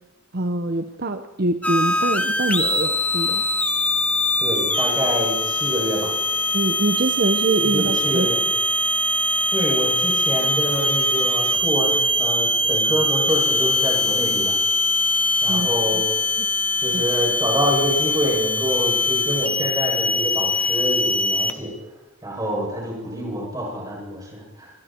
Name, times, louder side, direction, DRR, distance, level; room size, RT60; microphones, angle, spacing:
voice 1, 0.3-3.4 6.5-8.3 15.5-15.7 15.9-16.0 16.4-16.6 16.9-17.0, right 2 dB, 45° right, 7 dB, 1.0 m, -24 dB
sound 1, 1.6-21.5, left 1 dB, 5° left, 1.1 m, -22 dB
voice 2, 4.4-6.1 7.6-8.4 9.5-14.6 15.4-16.0 16.8-21.7 22.2-24.7, equal, 15° right, -2 dB, 7.6 m, -26 dB
27.5 x 23.5 x 4.6 m, 1.0 s
head